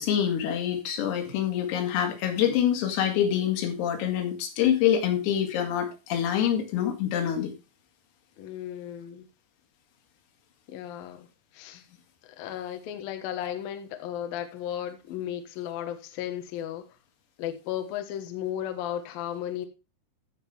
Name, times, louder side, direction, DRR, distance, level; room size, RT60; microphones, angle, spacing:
voice 1, 0.0-7.5, left 9 dB, 90° left, 4.9 m, -26 dB
voice 2, 8.4-9.3 10.7-11.3 11.5-11.9 12.2-16.8 17.4-19.7, left 11 dB, 65° left, 2.5 m, -35 dB
15.0 x 6.8 x 3.5 m
omnidirectional pair, 5.9 m